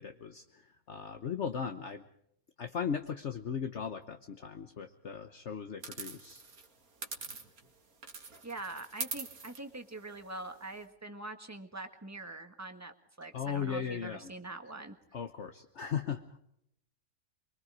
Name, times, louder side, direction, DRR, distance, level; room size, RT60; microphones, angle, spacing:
voice 1, 0.0-2.0 2.6-6.4 13.3-14.3 15.1-16.4, left 7 dB, 55° left, 6 dB, 1.3 m, -37 dB
sound 1, 5.8-7.7 8.0-10.8, right 4 dB, 90° right, 2.5 m, -43 dB
voice 2, 8.4-15.0, right 2 dB, 10° right, 6 dB, 1.6 m, -44 dB
24.5 x 23.5 x 4.9 m, 0.72 s
omnidirectional pair, 1.5 m